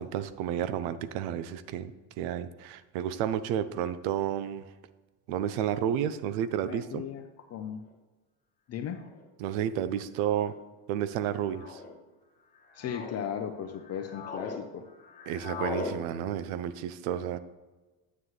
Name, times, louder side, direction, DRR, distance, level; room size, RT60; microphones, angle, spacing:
voice 1, 0.0-4.6 5.3-7.0 9.4-10.5 10.9-11.8 15.3-17.4, right 10 dB, 90° right, 14 dB, 0.7 m, -31 dB
voice 2, 6.6-7.2 7.5-7.8 8.7-9.0 12.7-14.9, left 8 dB, 35° left, 6 dB, 0.5 m, -36 dB
sound 1, 7.9-8.0 9.0-9.3 10.2-10.6 11.5-11.9 12.5-13.3 13.7-14.6 14.9-15.9, left 4 dB, 20° left, 1.1 m, -39 dB
9.4 x 7.4 x 3.2 m, 1.2 s
cardioid pair, 150°, 46 cm